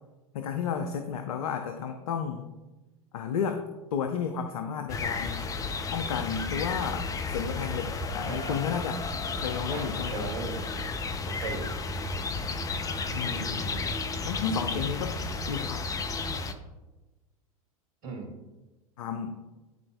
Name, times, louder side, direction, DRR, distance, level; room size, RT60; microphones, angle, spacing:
voice 1, 0.3-2.5 3.1-3.6 3.9-5.5 5.9-9.0 9.3-10.3 13.1-13.5 14.3-15.2 15.5-15.8 19.0-19.3, left 7 dB, 70° left, 7 dB, 0.5 m, -32 dB
sound 1, 4.9-16.5, left 3 dB, 20° left, 0.5 m, -33 dB
voice 2, 8.2-8.6 9.7-11.7 13.3-13.9 18.0-18.3, right 4 dB, 70° right, 2 dB, 2.0 m, -39 dB
10.5 x 4.2 x 2.2 m, 1.1 s
figure-of-eight pair, 85°, 19 cm